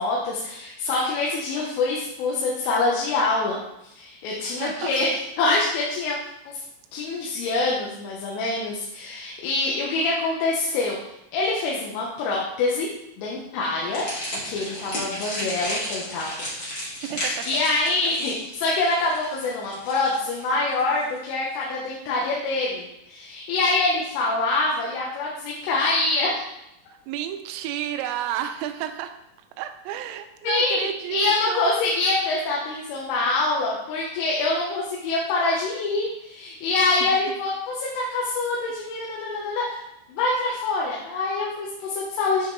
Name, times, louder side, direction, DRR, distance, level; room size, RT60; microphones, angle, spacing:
voice 1, 0.0-6.2 6.5-6.6 6.9-11.0 11.3-12.9 13.2-14.1 14.5-16.7 17.5-26.5 30.4-39.8 40.1-42.5, left 3 dB, 80° left, -4 dB, 3.6 m, -25 dB
voice 2, 4.4-4.9 16.6-17.5 18.0-18.1 27.1-29.2 29.6-31.7 37.0-37.2, right 11 dB, 85° right, 8 dB, 3.2 m, -32 dB
sound 1, 13.9-21.2, equal, 60° left, 0.9 m, -33 dB
9.5 x 5.1 x 3.2 m, 0.84 s
omnidirectional pair, 5.8 m